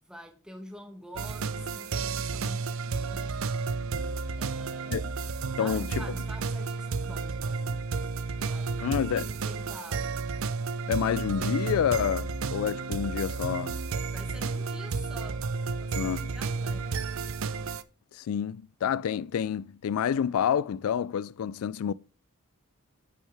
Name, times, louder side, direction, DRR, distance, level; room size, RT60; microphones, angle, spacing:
voice 1, 0.0-3.4 4.4-7.9 8.3-10.3 14.1-17.1, equal, 5° right, 1.3 m, -47 dB
sound 1, 1.1-17.8, right 4 dB, 65° right, 0.5 m, -32 dB
voice 2, 5.6-6.0 8.8-9.3 10.9-13.8 16.0-16.3 18.1-21.9, left 8 dB, 80° left, 0.3 m, -28 dB
9.9 x 6.4 x 3.3 m
head